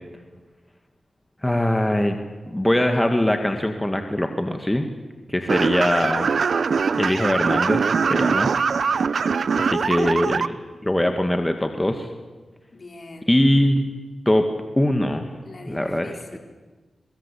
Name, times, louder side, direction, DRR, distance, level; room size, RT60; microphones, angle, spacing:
voice 1, 1.4-2.2 2.5-4.9 5.3-6.3 6.9-8.5 9.6-10.5 10.8-12.1 13.3-13.9 14.3-14.5 14.8-15.3 15.7-16.4, left 1 dB, 15° left, 5 dB, 2.1 m, -22 dB
sound 1, 5.5-10.5, right 5 dB, 75° right, 0.8 m, -22 dB
voice 2, 9.7-10.3 12.7-13.3 15.4-16.4, left 3 dB, 50° left, 3 dB, 4.3 m, -42 dB
23.0 x 22.5 x 8.6 m, 1.3 s
cardioid pair, 55°, 0 cm